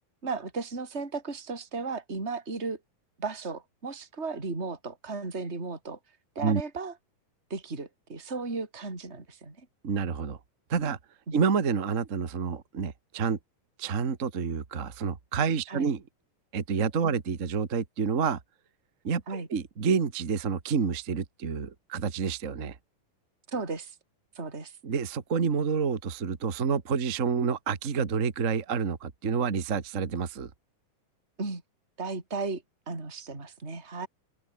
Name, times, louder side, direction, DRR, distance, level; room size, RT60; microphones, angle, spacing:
voice 1, 0.2-2.8 3.2-6.0 6.3-6.9 7.5-9.7 11.3-11.4 15.7-15.9 17.0-17.2 19.3-19.5 23.5-24.0 24.4-24.7 31.4-31.6 32.0-34.1, right 4 dB, 15° right, 4.3 m, -35 dB
voice 2, 9.8-10.4 10.7-11.0 11.3-13.4 13.8-16.0 16.5-18.4 19.0-22.7 24.8-30.5, right 5 dB, 35° right, 1.4 m, -28 dB
open air
omnidirectional pair, 4.2 m